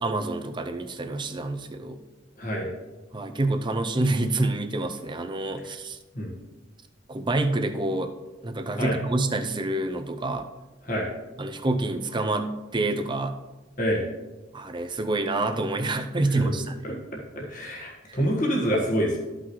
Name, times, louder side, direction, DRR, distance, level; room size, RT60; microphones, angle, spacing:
voice 1, 0.0-2.0 3.1-6.0 7.1-8.1 8.4-10.5 11.4-13.4 14.5-17.0 18.1-18.2, right 2 dB, 25° right, 7 dB, 0.6 m, -27 dB
voice 2, 2.4-2.7 6.1-6.3 8.8-9.0 10.8-11.1 13.8-14.0 16.3-16.5 16.8-19.2, equal, 45° left, -2 dB, 1.5 m, -27 dB
13.0 x 6.0 x 3.2 m, 1.2 s
head